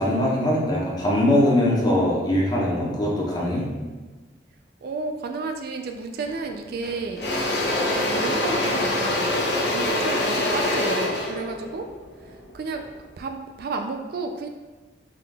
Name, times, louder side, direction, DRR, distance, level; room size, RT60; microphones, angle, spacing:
voice 1, 0.0-3.6, left 1 dB, 20° left, -4 dB, 0.8 m, -21 dB
voice 2, 4.8-9.3 9.6-11.9 12.2-12.8 13.2-14.5, right 4 dB, 55° right, 5 dB, 0.3 m, -32 dB
Engine / Drill, 6.3-6.5 6.8-13.0, left 1 dB, 60° left, 0.7 m, -25 dB
3.8 x 2.9 x 3.3 m, 1.3 s
head